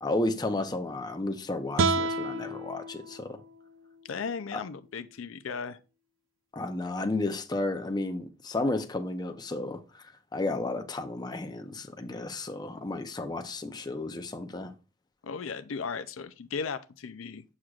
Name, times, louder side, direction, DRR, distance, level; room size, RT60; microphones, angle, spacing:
voice 1, 0.0-3.4 6.5-14.7, left 2 dB, 20° left, 0.7 m, -32 dB
sound 1, 1.8-4.9, right 3 dB, 80° right, 0.5 m, -32 dB
voice 2, 4.1-5.8 15.2-17.4, left 5 dB, 80° left, 0.5 m, -36 dB
7.4 x 6.4 x 2.4 m
head